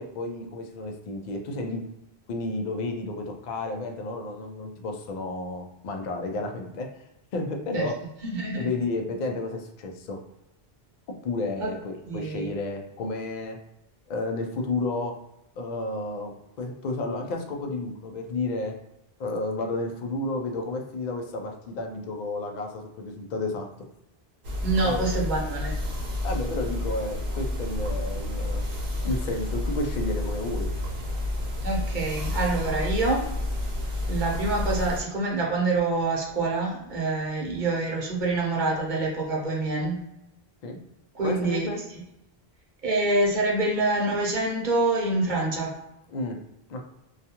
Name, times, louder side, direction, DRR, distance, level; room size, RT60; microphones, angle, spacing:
voice 1, 0.0-1.8 2.3-6.9 7.3-8.0 8.5-10.2 11.2-13.6 14.1-15.1 15.6-18.8 19.2-23.7 24.8-25.0 26.2-28.6 29.0-30.7 40.6-40.8 41.2-41.8 46.1-46.4 46.7-46.9, left 2 dB, 55° left, 3 dB, 0.5 m, -31 dB
voice 2, 8.2-8.7 11.6-11.7 12.1-12.5 24.6-25.7 31.6-33.2 34.1-40.0 41.1-41.7 42.8-45.8, right 2 dB, 50° right, -2 dB, 0.8 m, -26 dB
sound 1, 24.4-35.0, left 1 dB, 85° right, 1.0 m, -30 dB
2.4 x 2.2 x 2.8 m, 0.87 s
omnidirectional pair, 1.0 m